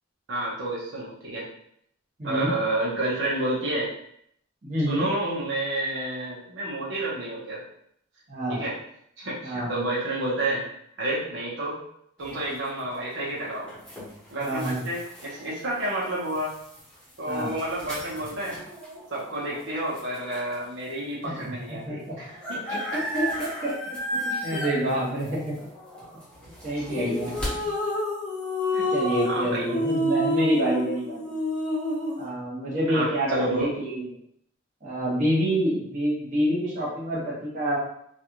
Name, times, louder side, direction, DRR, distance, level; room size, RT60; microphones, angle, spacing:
voice 1, 0.3-1.5 2.2-3.9 4.9-7.6 8.5-8.7 9.2-10.6 11.0-11.8 12.2-13.7 14.3-16.6 17.2-18.6 19.1-22.8 24.3-24.6 26.8-27.3 28.7-28.9 29.2-29.7 32.9-33.7, right 1 dB, 75° right, -6 dB, 0.9 m, -30 dB
voice 2, 2.2-2.5 4.6-5.1 8.3-8.6 9.4-9.7 14.4-14.8 17.3-17.5 21.2-22.2 22.7-22.8 23.1-23.7 24.1-25.6 26.6-27.3 28.9-31.3 32.2-33.7 33.9-34.0 34.8-37.8, equal, 40° right, -7 dB, 1.1 m, -27 dB
sound 1, 12.2-20.7 21.2-21.3 21.5-27.5, equal, 5° left, 0.9 m, -37 dB
sound 2, 26.9-32.3, left 1 dB, 40° left, 0.6 m, -28 dB
3.2 x 2.4 x 2.9 m, 0.71 s
head